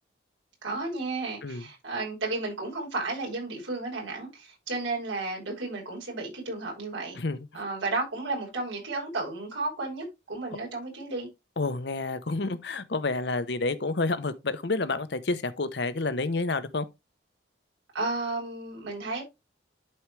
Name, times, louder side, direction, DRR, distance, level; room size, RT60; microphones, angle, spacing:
voice 1, 0.6-7.2 7.5-11.3 17.9-19.2, right 3 dB, 85° right, 5.4 m, -33 dB
voice 2, 7.2-7.5 11.6-16.9, left 3 dB, 60° left, 0.8 m, -29 dB
11.5 x 4.6 x 3.2 m
head